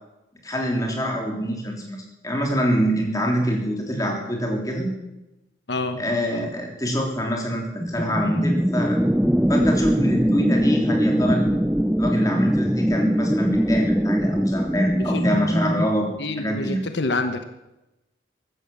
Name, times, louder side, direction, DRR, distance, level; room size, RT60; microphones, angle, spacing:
voice 1, 0.4-2.0 2.2-4.9 6.0-9.0 9.5-11.5 12.0-16.1 16.4-16.8, equal, 20° left, 1 dB, 3.5 m, -25 dB
voice 2, 5.7-6.0 15.0-15.5 16.2-17.4, left 2 dB, 75° left, 8 dB, 1.2 m, -27 dB
sound 1, 7.8-15.9, equal, 5° right, 0.5 m, -21 dB
15.0 x 12.5 x 7.2 m, 0.96 s
head